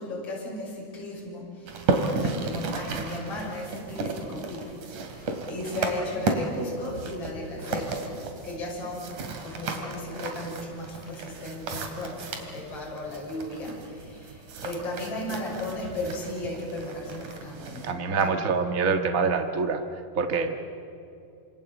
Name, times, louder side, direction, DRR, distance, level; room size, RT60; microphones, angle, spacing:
voice 1, 0.0-4.7 5.1-18.3, left 1 dB, 40° left, -3 dB, 7.2 m, -36 dB
sound 1, 1.7-17.9, right 3 dB, 60° right, 3.6 m, -34 dB
voice 2, 17.8-19.8 20.1-20.6, right 5 dB, 85° right, 5 dB, 0.7 m, -25 dB
27.5 x 27.0 x 7.9 m, 2.6 s
omnidirectional pair, 4.2 m